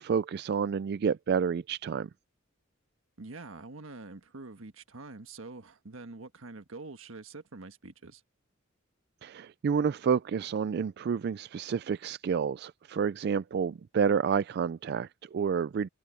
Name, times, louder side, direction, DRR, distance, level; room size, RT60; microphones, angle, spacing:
voice 1, 0.0-2.1 9.2-15.9, right 6 dB, 50° right, 0.3 m, -29 dB
voice 2, 3.2-8.2, right 3 dB, 80° right, 1.5 m, -45 dB
head